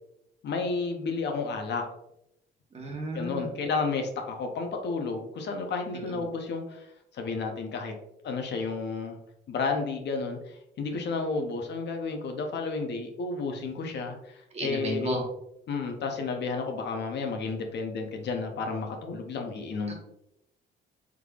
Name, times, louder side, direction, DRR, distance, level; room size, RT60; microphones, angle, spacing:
voice 1, 0.4-1.9 3.1-6.9 7.1-7.9 8.2-9.2 9.5-15.2 15.7-20.0, left 4 dB, 60° left, 4 dB, 0.6 m, -32 dB
voice 2, 2.7-3.5 14.5-15.2, right 1 dB, 30° right, 0 dB, 1.1 m, -32 dB
3.6 x 3.2 x 2.3 m, 0.80 s
cardioid pair, 90°, 20 cm